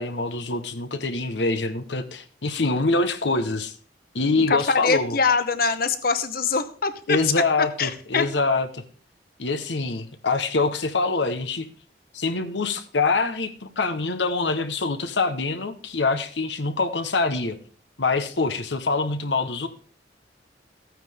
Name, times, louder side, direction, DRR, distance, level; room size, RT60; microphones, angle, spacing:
voice 1, 0.0-3.7 4.1-5.2 7.1-8.8 9.4-11.7 12.1-17.6 18.0-19.7, left 3 dB, 85° left, 9 dB, 1.1 m, -25 dB
voice 2, 4.5-7.3 7.8-8.2, left 4 dB, 55° left, 11 dB, 1.0 m, -23 dB
15.0 x 9.1 x 3.6 m, 0.44 s
head